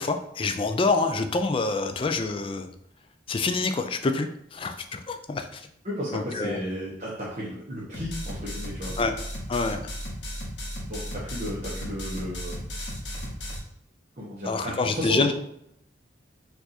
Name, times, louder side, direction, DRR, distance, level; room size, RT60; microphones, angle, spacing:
voice 1, 0.0-2.7 3.3-5.7 6.1-6.6 9.0-9.1 9.5-9.8 14.5-15.3, left 3 dB, 30° left, 7 dB, 0.4 m, -26 dB
voice 2, 5.8-8.9 10.9-12.6 14.2-15.3, equal, 40° right, -7 dB, 1.1 m, -33 dB
sound 1, 7.9-13.6, equal, 85° left, 1.2 m, -35 dB
4.6 x 2.6 x 4.2 m, 0.76 s
head